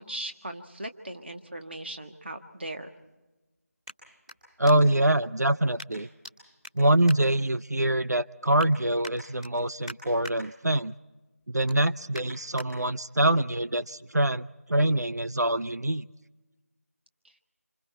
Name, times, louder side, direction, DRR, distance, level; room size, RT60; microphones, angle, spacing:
voice 1, 0.0-2.9, right 1 dB, 40° right, 5 dB, 1.6 m, -38 dB
sound 1, 3.2-5.1 5.8-6.3 6.6-7.9 8.3-8.7 9.0-10.4 10.8-11.0 11.4-12.7 13.2-13.3, left 1 dB, 5° right, 2.1 m, -46 dB
voice 2, 4.6-6.1 6.8-10.9 11.5-16.1, right 1 dB, 90° right, 15 dB, 0.6 m, -25 dB
27.0 x 26.5 x 4.4 m, 1.1 s
figure-of-eight pair, 170°, 9 cm